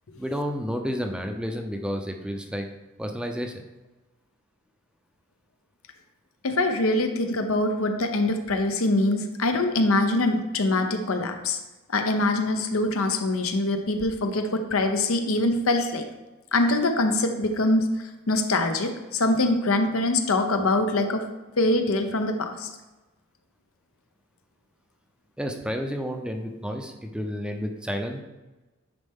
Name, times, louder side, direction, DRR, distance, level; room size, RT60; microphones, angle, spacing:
voice 1, 0.2-2.7 3.0-3.6 25.4-28.2, equal, 5° right, 4 dB, 0.6 m, -31 dB
voice 2, 6.4-11.6 11.9-16.0 16.5-17.9 18.3-21.2 21.6-22.7, left 2 dB, 80° left, 6 dB, 0.8 m, -24 dB
10.0 x 4.3 x 3.6 m, 1.1 s
head